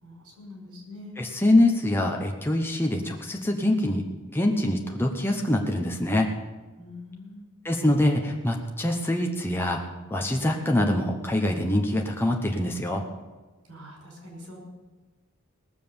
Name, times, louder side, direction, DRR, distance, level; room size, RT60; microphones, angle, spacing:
voice 1, 0.0-1.2 6.8-7.5 13.6-14.6, left 2 dB, 80° right, 1 dB, 5.2 m, -44 dB
voice 2, 1.2-4.0 4.3-6.3 7.6-9.8 10.1-13.0, left 1 dB, 10° left, 1 dB, 1.0 m, -24 dB
18.5 x 7.5 x 7.1 m, 1.3 s
head